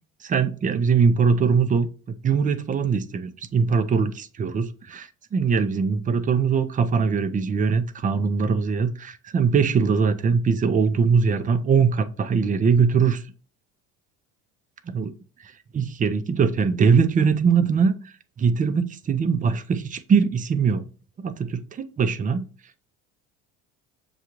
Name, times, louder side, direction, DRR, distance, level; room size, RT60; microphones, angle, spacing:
voice 1, 0.2-1.9 2.2-13.2 14.9-15.1 15.7-17.9 18.4-20.8 21.2-22.4, right 5 dB, 25° right, 11 dB, 0.4 m, -21 dB
6.5 x 2.4 x 2.9 m, 0.39 s
supercardioid pair, 85°, 35 cm